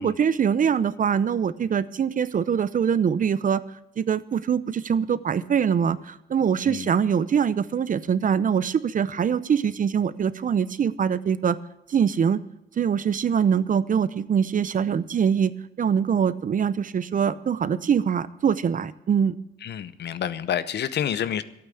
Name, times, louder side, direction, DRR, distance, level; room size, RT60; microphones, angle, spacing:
voice 1, 0.0-3.6 4.0-11.6 11.9-12.4 12.8-15.5 15.8-19.3, right 7 dB, 40° right, 16 dB, 0.7 m, -23 dB
voice 2, 19.6-21.4, left 9 dB, 60° left, 15 dB, 0.8 m, -28 dB
12.0 x 8.9 x 8.4 m, 0.85 s
cardioid pair, 90°, 20 cm